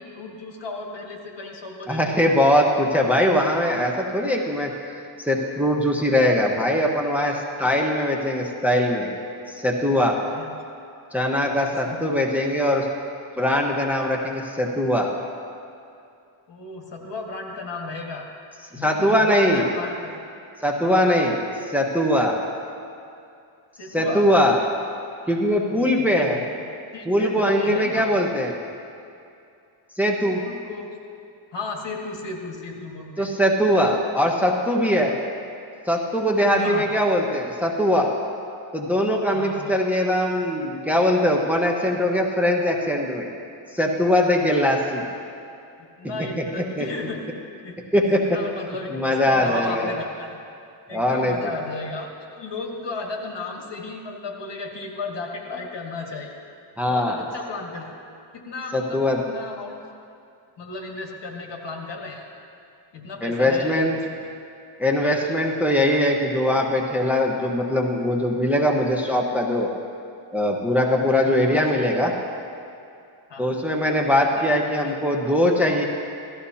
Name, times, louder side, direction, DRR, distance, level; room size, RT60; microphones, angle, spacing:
voice 1, 0.0-2.5 10.3-10.5 11.9-12.1 16.5-18.3 18.7-20.2 20.8-21.0 23.8-24.3 25.7-26.4 26.9-28.1 30.3-31.0 31.5-33.3 36.5-36.9 39.3-39.8 44.4-44.7 45.8-47.2 47.6-47.8 48.0-50.4 50.9-56.4 56.9-57.9 58.3-59.0 59.3-59.8 60.6-62.3 62.9-64.0 65.0-65.3 71.2-71.9 73.3-73.6 74.4-74.5 74.7-74.9, left 3 dB, 60° left, 0 dB, 1.8 m, -35 dB
voice 2, 1.9-4.7 5.2-9.1 9.5-10.2 11.1-12.9 13.4-15.1 18.7-19.6 20.6-22.4 23.9-24.6 25.3-26.4 27.1-28.6 30.0-30.4 33.2-35.2 35.9-38.1 38.7-43.3 43.7-45.1 46.4-46.5 46.8-46.9 47.9-48.2 48.9-49.9 50.9-51.4 56.8-57.2 58.7-59.2 63.2-63.9 64.8-69.7 70.3-72.1 73.4-75.8, left 1 dB, 5° right, -1 dB, 1.2 m, -21 dB
17.0 x 13.5 x 2.9 m, 2.5 s
cardioid pair, 90°, 49 cm